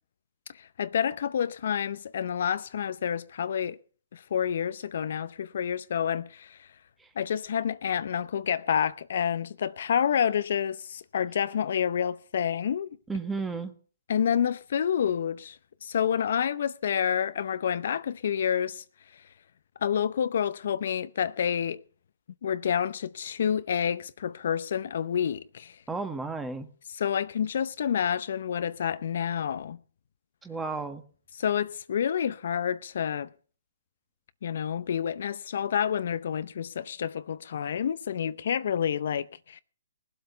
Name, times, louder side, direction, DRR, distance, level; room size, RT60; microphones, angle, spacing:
voice 1, 0.8-3.8 4.1-6.6 7.2-12.9 14.1-15.6 15.8-18.8 19.8-21.8 22.4-25.7 26.9-29.8 31.4-33.3 34.4-39.6, left 8 dB, 60° left, 0.7 m, -28 dB
voice 2, 13.1-13.7 25.9-26.7 30.4-31.0, right 4 dB, 10° right, 1.4 m, -33 dB
19.0 x 7.9 x 6.9 m
hypercardioid pair, 145°, 0 cm